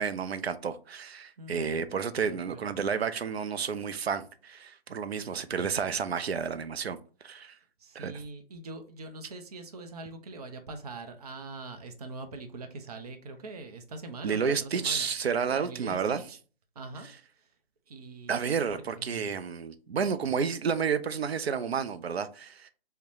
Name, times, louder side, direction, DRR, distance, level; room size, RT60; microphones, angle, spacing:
voice 1, 0.0-7.0 7.2-7.5 7.9-8.1 14.2-16.2 18.3-22.7, right 6 dB, 90° right, 0.5 m, -31 dB
voice 2, 1.4-1.7 2.2-2.6 7.5-15.1 15.5-16.4 16.8-17.1 17.3-17.5 17.9-19.4, right 3 dB, 40° right, 0.5 m, -43 dB
3.9 x 2.1 x 2.9 m
figure-of-eight pair, 150°, 30 cm